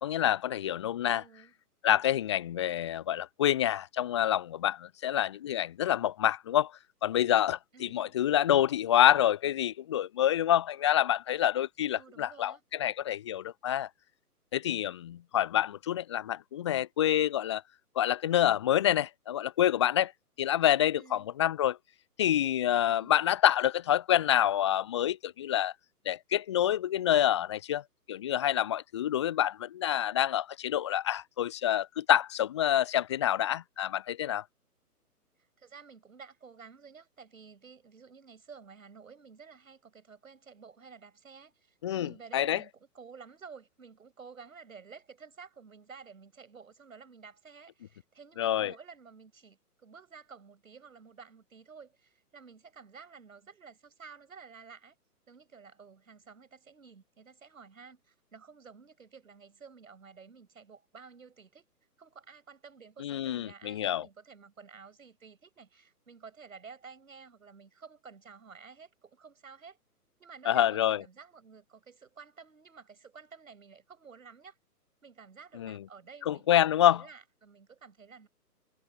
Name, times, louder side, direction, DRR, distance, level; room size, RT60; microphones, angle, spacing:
voice 1, 0.0-1.2 1.8-6.7 7.0-13.9 14.5-17.6 18.0-20.1 20.4-21.8 22.2-25.7 26.1-27.8 28.1-34.4 41.8-42.6 48.4-48.7 63.0-64.1 70.5-71.0 75.6-75.8 76.3-77.0, left 11 dB, 20° left, 0.8 m, -27 dB
voice 2, 1.1-1.5 7.7-8.2 11.9-12.6 21.0-21.3 22.9-23.3 35.6-55.0 55.3-61.7 62.0-69.8 70.2-74.6 75.0-78.3, right 5 dB, 60° right, 7.7 m, -52 dB
figure-of-eight pair, 135°, 47 cm